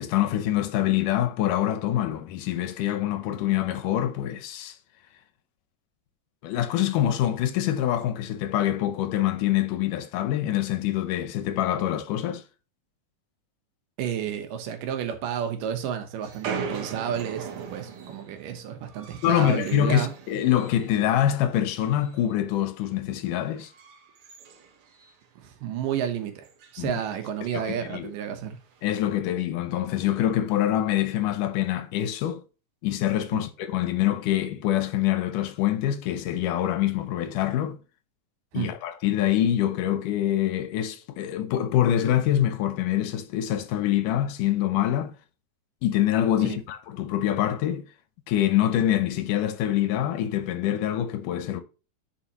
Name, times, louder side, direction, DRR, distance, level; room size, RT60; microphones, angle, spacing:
voice 1, 0.0-4.8 6.4-12.4 19.2-23.7 26.8-26.9 27.5-28.1 28.8-32.4 32.8-37.8 38.5-45.2 45.8-47.8 48.3-51.6, left 12 dB, 80° left, 2.3 m, -25 dB
voice 2, 14.0-20.1 25.4-26.5 26.7-28.6 33.3-33.4 38.5-38.7 46.4-46.6, right 9 dB, 85° right, 2.7 m, -31 dB
sound 1, 16.2-21.0 21.3-22.3 22.6-22.9 23.4-25.4 25.7-25.8 26.0-26.1 26.4-26.8 27.7-27.8 28.6-29.0, right 6 dB, 65° right, 1.4 m, -40 dB
10.0 x 5.6 x 3.0 m
omnidirectional pair, 3.7 m